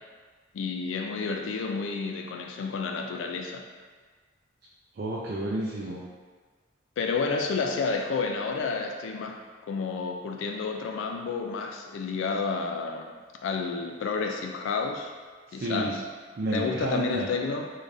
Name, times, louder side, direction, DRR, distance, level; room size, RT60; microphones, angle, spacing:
voice 1, 0.5-3.6 7.0-13.1 13.4-15.1 15.5-16.0 16.5-17.7, left 4 dB, 75° left, 3 dB, 0.3 m, -30 dB
voice 2, 4.9-6.1 15.5-16.0 16.4-17.3, right 1 dB, 50° right, -4 dB, 0.4 m, -31 dB
3.7 x 3.2 x 2.6 m, 1.5 s
head